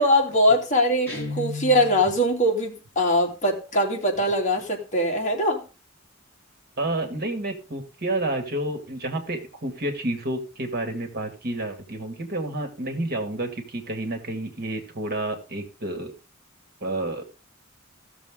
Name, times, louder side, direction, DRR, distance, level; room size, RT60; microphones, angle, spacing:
voice 1, 0.0-5.6, equal, 35° left, 0 dB, 2.4 m, -22 dB
Guitar, 1.1-2.2, left 3 dB, 10° left, 6.1 m, -33 dB
voice 2, 6.8-16.1 16.8-17.2, right 1 dB, 50° right, 4 dB, 2.0 m, -30 dB
15.5 x 6.8 x 3.7 m, 0.32 s
head